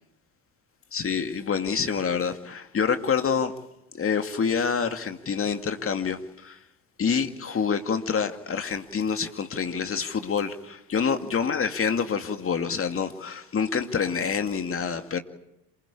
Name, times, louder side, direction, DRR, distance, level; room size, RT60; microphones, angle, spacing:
voice 1, 0.9-3.5 3.9-6.6 7.0-15.2, left 6 dB, 30° left, 2.4 m, -27 dB
27.5 x 21.0 x 8.5 m
figure-of-eight pair, 60°, 44 cm